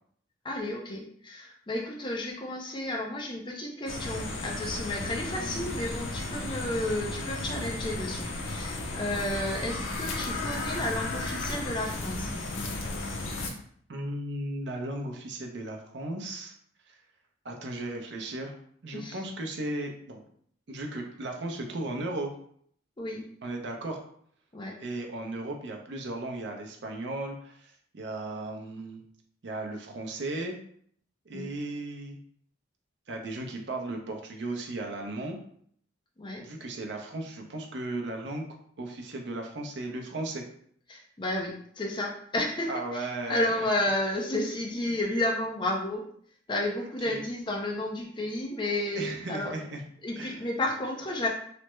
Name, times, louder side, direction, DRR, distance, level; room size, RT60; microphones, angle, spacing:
voice 1, 0.4-12.4 18.9-19.2 23.0-23.3 24.5-24.8 31.3-31.5 36.2-36.4 40.9-46.0 46.5-49.5 50.0-51.3, left 1 dB, 25° left, 0 dB, 0.5 m, -32 dB
sound 1, 3.9-13.5, left 2 dB, 85° left, 0.6 m, -34 dB
voice 2, 13.9-16.5 17.4-18.6 18.8-20.2 20.7-22.3 23.4-24.0 24.8-29.0 29.4-30.6 31.3-32.2 33.1-35.4 36.4-38.5 38.8-40.4 42.7-43.7 46.8-47.2 48.9-49.8 50.2-50.4, right 2 dB, 65° right, 2 dB, 0.5 m, -36 dB
3.2 x 2.0 x 3.0 m, 0.62 s
head